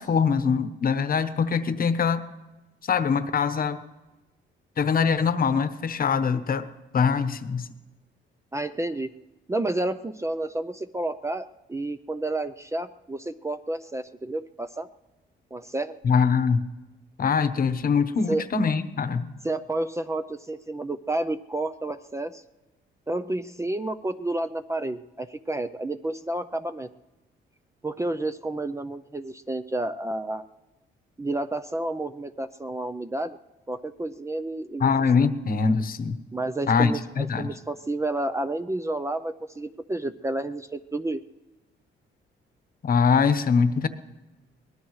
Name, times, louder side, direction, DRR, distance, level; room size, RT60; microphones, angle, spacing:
voice 1, 0.0-2.2 2.9-3.8 4.8-6.7 6.9-7.7 16.0-16.6 17.2-19.3 34.8-36.2 36.7-37.5 42.8-43.9, left 5 dB, 45° left, 11 dB, 1.0 m, -23 dB
voice 2, 8.5-9.1 9.5-14.9 15.5-16.0 18.3-18.4 19.4-22.4 23.1-26.9 27.8-30.4 31.2-33.4 33.7-34.9 35.2-35.3 36.3-41.2, right 2 dB, 15° right, 10 dB, 0.5 m, -30 dB
23.0 x 19.0 x 3.2 m, 1.1 s
cardioid pair, 90°, 20 cm